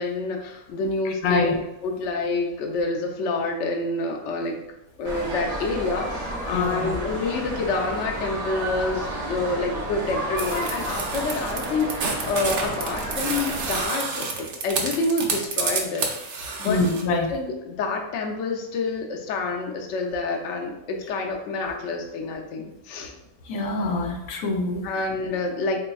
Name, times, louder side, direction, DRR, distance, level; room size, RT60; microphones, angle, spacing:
voice 1, 0.0-1.5 1.8-4.6 5.0-16.1 16.6-16.8 17.3-23.1 24.8-25.8, left 3 dB, 65° left, 2 dB, 0.9 m, -28 dB
voice 2, 1.0-1.6 6.5-6.9 16.6-17.3 23.5-24.9, left 3 dB, 90° left, 2 dB, 1.1 m, -25 dB
sound 1, 5.0-13.9, right 1 dB, 35° right, 0.7 m, -31 dB
sound 2, 10.4-17.0, right 4 dB, 60° right, 0.9 m, -29 dB
4.0 x 3.3 x 2.3 m, 0.92 s
omnidirectional pair, 1.5 m